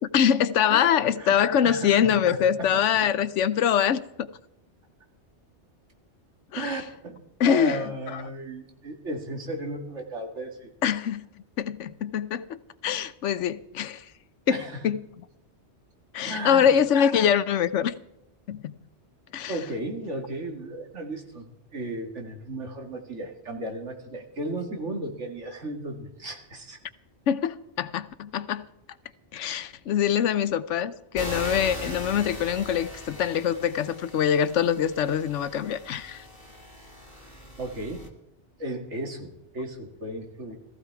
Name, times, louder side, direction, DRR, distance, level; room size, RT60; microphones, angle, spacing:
voice 1, 0.0-4.3 6.5-6.7 7.4-7.8 8.1-8.2 10.8-11.2 11.6-14.0 14.5-15.0 16.1-17.9 18.5-18.7 19.3-19.5 27.3-28.7 29.3-36.2, left 8 dB, 85° left, 1.1 m, -24 dB
voice 2, 0.7-1.4 1.6-3.1 6.6-10.7 14.5-14.9 16.2-16.7 19.5-26.8 37.6-38.1 38.6-40.6, right 2 dB, 80° right, 2.6 m, -35 dB
sound 1, 31.2-38.1, equal, 20° left, 2.3 m, -40 dB
18.0 x 14.5 x 4.7 m
omnidirectional pair, 1.2 m